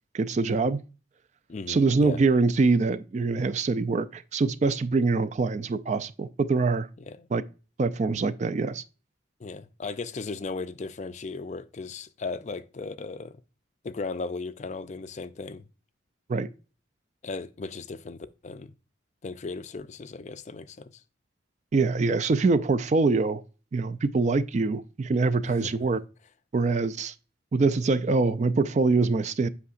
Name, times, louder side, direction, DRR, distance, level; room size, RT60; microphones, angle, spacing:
voice 1, 0.1-0.8 1.7-6.9 7.3-7.4 7.8-8.8 16.3-16.5 21.7-23.4 23.7-26.0 26.5-27.1 27.5-29.5, right 3 dB, 35° right, 0.3 m, -24 dB
voice 2, 1.5-2.2 7.1-7.3 9.4-13.4 13.8-15.7 17.2-18.7 19.2-21.0 25.4-25.7, left 3 dB, 35° left, 0.4 m, -36 dB
8.3 x 5.6 x 2.5 m
head